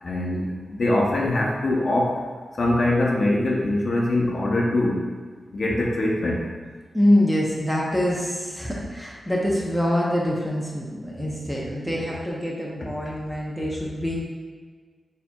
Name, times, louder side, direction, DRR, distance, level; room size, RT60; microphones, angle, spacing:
voice 1, 0.0-2.2 2.5-5.1 5.5-6.4, left 1 dB, 45° left, -3 dB, 0.7 m, -23 dB
voice 2, 6.9-14.2, left 1 dB, ahead, -4 dB, 0.6 m, -24 dB
6.6 x 2.8 x 2.3 m, 1.5 s
wide cardioid pair, 140°, 0 cm